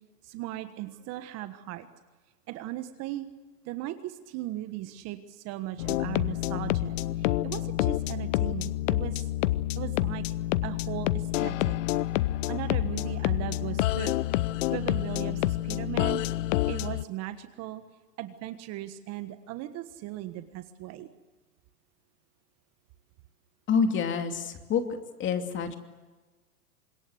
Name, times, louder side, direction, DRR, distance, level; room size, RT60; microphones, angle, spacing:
voice 1, 0.2-1.9 2.5-3.3 3.6-9.3 9.8-10.2 10.6-11.8 12.5-14.1 14.7-16.2 16.7-17.8 18.2-21.1, right 14 dB, 35° right, 10 dB, 1.4 m, -38 dB
sound 1, 5.8-17.0, left 15 dB, 55° left, 0.8 m, -28 dB
voice 2, 23.7-24.8 25.2-25.7, left 6 dB, 25° left, 6 dB, 2.7 m, -27 dB
26.0 x 21.5 x 8.0 m, 1.3 s
hypercardioid pair, 130°, 46 cm